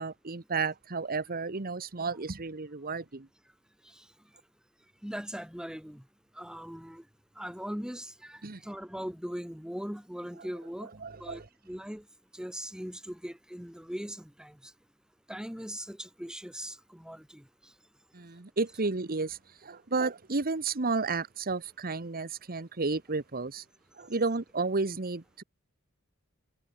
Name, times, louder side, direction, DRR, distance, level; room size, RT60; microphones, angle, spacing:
voice 1, 0.0-3.3 8.4-8.6 11.0-11.5 18.1-23.6 23.9-25.4, right 3 dB, 45° right, 1.2 m, -32 dB
voice 2, 5.0-6.0 6.4-7.0 7.4-10.9 11.2-12.1 12.3-14.7 15.3-17.5, equal, 5° right, 2.1 m, -40 dB
head